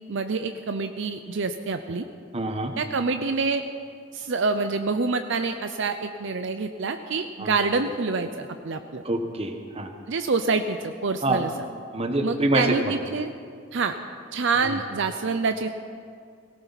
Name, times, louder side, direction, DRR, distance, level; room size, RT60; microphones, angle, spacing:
voice 1, 0.1-2.0 2.8-3.6 4.1-9.0 10.1-11.5 12.2-13.3 13.7-13.9 14.3-15.7, right 4 dB, 60° right, 8 dB, 0.6 m, -26 dB
voice 2, 2.3-2.7 7.4-7.5 9.0-9.9 11.2-11.4 11.9-12.7, right 2 dB, 30° right, 5 dB, 1.1 m, -25 dB
18.0 x 18.0 x 4.1 m, 2.3 s
head